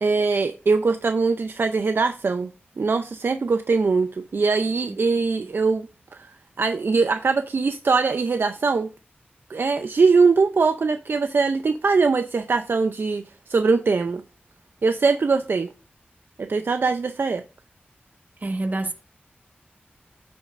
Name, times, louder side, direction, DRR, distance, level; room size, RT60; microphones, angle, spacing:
voice 1, 0.0-2.5 2.8-5.9 6.1-8.9 9.5-13.2 13.5-14.2 14.8-15.7 16.4-17.4, right 4 dB, 65° right, 0.4 m, -22 dB
voice 2, 18.4-18.9, right 2 dB, 45° right, 1.4 m, -26 dB
14.5 x 5.2 x 2.5 m
wide cardioid pair, 70°, 4 cm